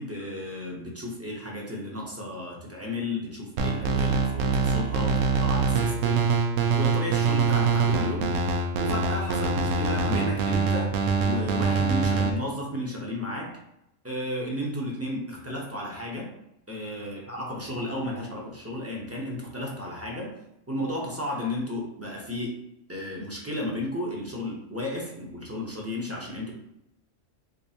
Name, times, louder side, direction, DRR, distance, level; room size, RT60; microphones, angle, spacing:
voice 1, 0.0-8.3 8.8-10.9 11.2-13.6 14.0-16.3 16.7-20.3 20.7-22.6 22.9-26.5, left 1 dB, 15° right, -3 dB, 0.6 m, -33 dB
sound 1, 3.6-12.3, right 4 dB, 85° right, 1.0 m, -24 dB
3.7 x 3.3 x 2.8 m, 0.83 s
omnidirectional pair, 1.3 m